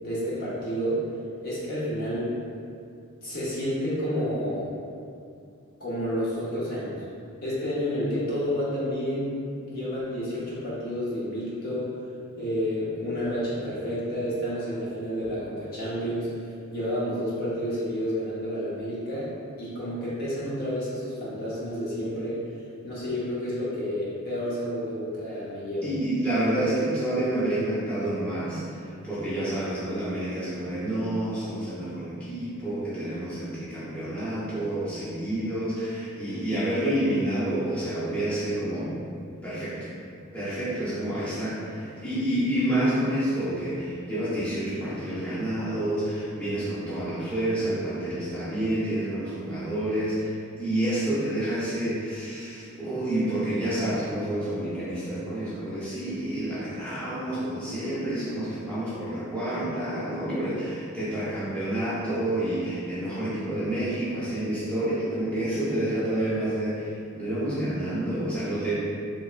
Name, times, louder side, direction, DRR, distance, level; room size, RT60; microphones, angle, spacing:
voice 1, 0.0-1.1 1.4-2.4 3.2-4.7 5.8-7.0 7.4-9.3 9.7-12.0 12.4-19.3 19.6-22.4 22.8-25.9, equal, 45° left, -9 dB, 0.7 m, -30 dB
voice 2, 25.8-39.0 39.4-39.9 40.3-68.8, right 1 dB, 5° left, -12 dB, 0.8 m, -29 dB
3.3 x 3.1 x 2.4 m, 2.4 s
head